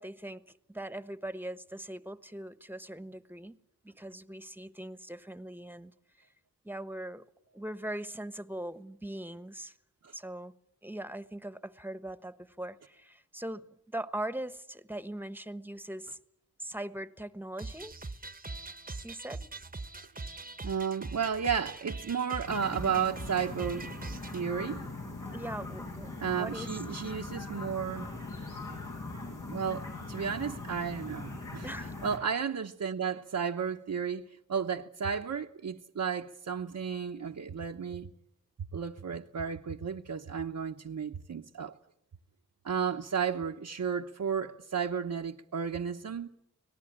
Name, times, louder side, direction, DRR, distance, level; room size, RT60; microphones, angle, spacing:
voice 1, 0.0-3.6 3.8-5.9 6.2-6.3 6.6-7.3 7.5-9.7 10.1-10.5 10.8-16.2 16.6-18.0 19.0-19.6 25.3-27.0 31.6-31.9, right 1 dB, 5° right, 1.2 m, -41 dB
sound 1, 17.6-24.4, right 3 dB, 25° right, 1.0 m, -42 dB
voice 2, 20.6-24.8 26.2-28.1 29.5-31.7 32.0-38.1 38.7-41.7 42.6-46.3, right 7 dB, 70° right, 1.0 m, -33 dB
sound 2, 22.5-32.2, left 2 dB, 80° left, 7.1 m, -41 dB
25.0 x 18.5 x 8.8 m
cardioid pair, 50°, 31 cm